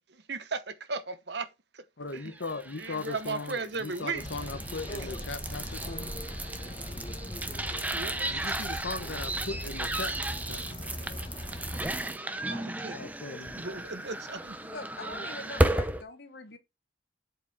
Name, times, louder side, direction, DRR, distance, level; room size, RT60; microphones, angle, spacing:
voice 1, 0.1-1.5 1.7-1.8 2.1-2.3 2.8-4.3 7.9-8.4 12.5-13.1 13.5-14.6, right 4 dB, 70° right, 1.0 m, -36 dB
voice 2, 2.0-6.1 8.3-10.2 10.5-10.8 12.9-13.6, left 3 dB, 80° left, 1.0 m, -38 dB
sound 1, 2.4-16.0, right 1 dB, 10° right, 0.7 m, -34 dB
sound 2, 4.2-12.0, equal, 30° left, 1.5 m, -40 dB
voice 3, 14.6-16.6, left 3 dB, 65° left, 1.5 m, -43 dB
7.9 x 4.9 x 4.9 m
head